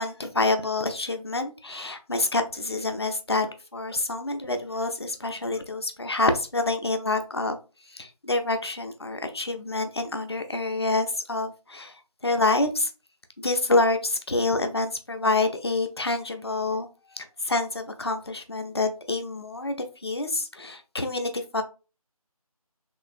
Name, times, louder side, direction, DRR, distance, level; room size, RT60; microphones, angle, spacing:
voice 1, 0.0-7.6 7.9-12.0 12.2-12.9 13.4-16.9 17.2-21.6, left 2 dB, 45° left, 6 dB, 0.4 m, -27 dB
3.0 x 2.6 x 2.4 m, 0.32 s
figure-of-eight pair, 170°, 19 cm